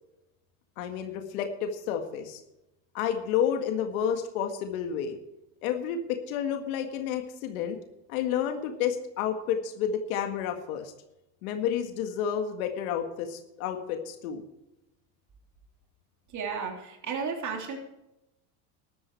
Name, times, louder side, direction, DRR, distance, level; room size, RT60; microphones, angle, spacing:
voice 1, 0.8-2.4 2.9-5.2 5.6-7.8 8.1-10.9 11.4-14.4, left 8 dB, 85° left, 5 dB, 1.9 m, -30 dB
voice 2, 16.3-17.8, right 5 dB, 45° right, 2 dB, 3.3 m, -33 dB
13.0 x 11.5 x 4.7 m, 0.92 s
supercardioid pair, 100°, 41 cm